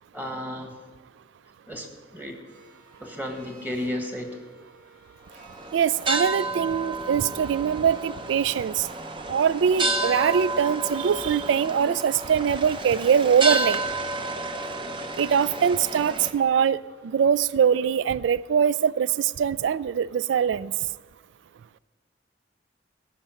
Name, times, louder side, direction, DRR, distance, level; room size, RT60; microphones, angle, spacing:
voice 1, 0.1-0.8 1.7-2.4 3.0-4.4, left 1 dB, 10° right, 3 dB, 1.3 m, -33 dB
sound 1, 2.5-20.7, equal, 65° right, 3.8 m, -55 dB
sound 2, 5.4-16.3, right 2 dB, 25° right, 0.7 m, -31 dB
voice 2, 5.7-8.9 9.3-13.8 15.2-20.7, right 7 dB, 85° right, 19 dB, 0.3 m, -23 dB
11.5 x 5.4 x 8.8 m, 1.4 s
head